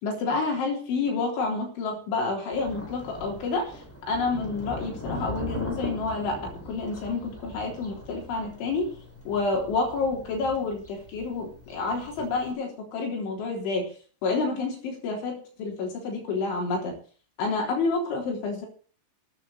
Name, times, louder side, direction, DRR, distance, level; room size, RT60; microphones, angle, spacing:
voice 1, 0.0-3.7 4.1-6.4 6.7-8.9 9.3-13.9 14.2-16.9 17.4-18.7, left 3 dB, 80° left, 0 dB, 6.1 m, -29 dB
Thunder, 2.5-12.5, left 1 dB, 5° left, 3.9 m, -40 dB
13.0 x 10.0 x 8.2 m, 0.42 s
omnidirectional pair, 5.4 m